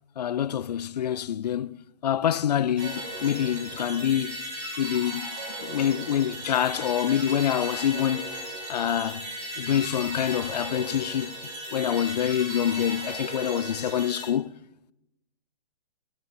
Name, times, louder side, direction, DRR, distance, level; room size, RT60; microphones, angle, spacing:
voice 1, 0.2-1.8 2.0-4.4 4.8-5.3 5.6-8.3 8.7-9.2 9.6-11.3 11.7-14.5, left 10 dB, 80° left, 0.4 m, -26 dB
sound 1, 2.8-14.2, equal, 30° right, 5.0 m, -36 dB
12.5 x 9.1 x 4.2 m
hypercardioid pair, 130°, 21 cm